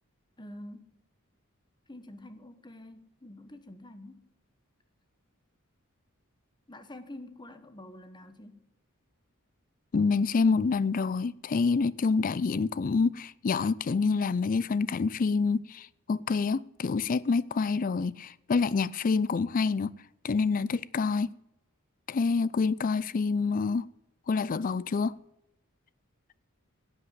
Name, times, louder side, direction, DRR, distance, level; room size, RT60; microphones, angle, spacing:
voice 1, 0.4-0.9 1.9-4.3 6.7-8.7, left 1 dB, 20° left, 1.1 m, -47 dB
voice 2, 9.9-19.9 20.2-21.3 22.1-23.9 24.3-25.2, left 4 dB, 40° left, 0.4 m, -27 dB
11.5 x 7.9 x 7.8 m
head